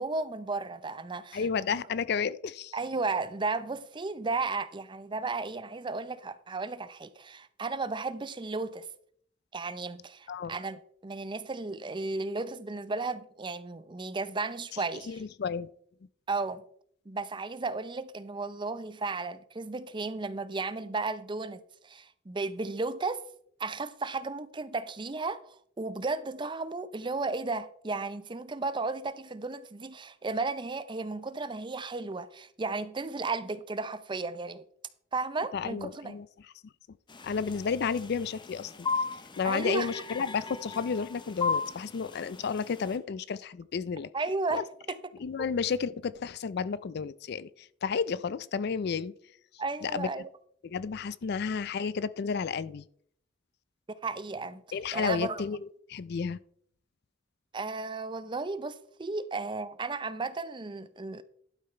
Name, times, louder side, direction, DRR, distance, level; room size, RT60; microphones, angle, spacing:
voice 1, 0.0-1.4 2.7-8.9 9.5-15.1 16.3-16.6 17.1-23.2 23.6-34.6 35.1-36.1 39.4-39.9 44.1-45.0 49.6-50.3 54.0-54.6 54.9-55.4 57.5-61.2, right 3 dB, 25° right, 0.5 m, -34 dB
voice 2, 1.3-2.7 10.3-10.6 14.7-15.7 35.5-36.5 37.2-38.9 39.4-44.1 44.5-44.6 45.2-49.1 49.8-50.2 50.6-52.8 54.7-56.4, left 6 dB, 55° left, 0.4 m, -32 dB
sound 1, 37.1-43.0, left 4 dB, 25° left, 0.9 m, -36 dB
11.5 x 5.8 x 4.3 m
head